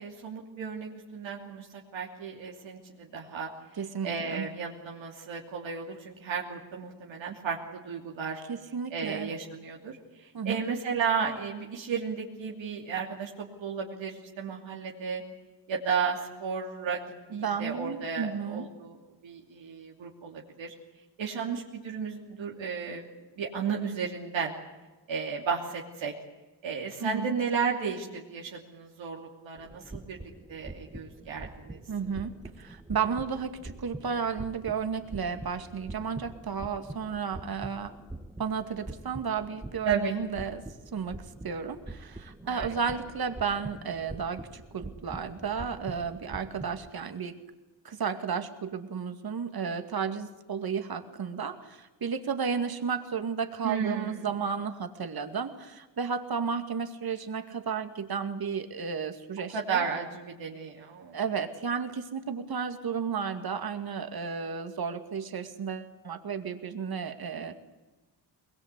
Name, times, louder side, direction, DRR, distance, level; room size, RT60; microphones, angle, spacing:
voice 1, 0.0-1.7 1.9-3.5 4.0-8.4 8.9-15.2 15.7-17.0 17.3-19.0 19.2-20.7 21.2-23.1 23.4-24.5 25.1-26.1 26.6-30.2 30.5-31.8 39.8-40.2 42.4-43.0 53.6-54.3 59.5-61.2, right 6 dB, 85° right, -1 dB, 3.0 m, -33 dB
voice 2, 3.8-4.5 8.5-9.3 10.3-10.7 17.3-18.7 27.0-27.4 31.9-37.9 38.4-40.6 40.9-47.4 47.8-59.8 61.1-67.5, right 6 dB, 55° right, 8 dB, 2.3 m, -33 dB
sound 1, 29.6-46.9, right 2 dB, 10° right, 1.4 m, -44 dB
22.0 x 21.5 x 8.4 m, 1.2 s
cardioid pair, 95°, 44 cm